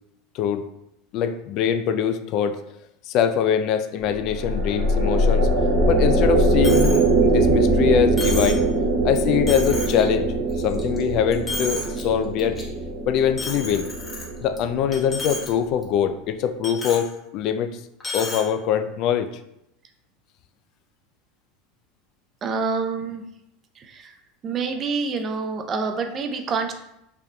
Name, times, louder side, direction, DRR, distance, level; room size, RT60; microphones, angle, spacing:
voice 1, 1.1-2.6 3.1-5.5 5.9-8.6 9.0-12.6 13.1-13.9 14.4-17.7 18.1-19.3, left 8 dB, 55° left, 9 dB, 0.3 m, -23 dB
sound 1, 4.0-15.5, right 2 dB, 65° right, 0.9 m, -22 dB
Coin (dropping), 6.6-7.0 7.4-7.5 8.2-8.6 9.1-9.2 9.5-10.0 10.5-11.0 11.3-12.0 12.4-12.6 13.4-14.6 14.9-15.5 15.8-15.9 16.6-17.1 18.0-18.4, left 2 dB, 20° left, 1.2 m, -32 dB
voice 2, 22.4-23.2 23.8-24.1 24.4-26.7, right 4 dB, 35° right, 6 dB, 0.5 m, -27 dB
4.9 x 2.9 x 2.2 m, 0.82 s
hypercardioid pair, 95°, 0 cm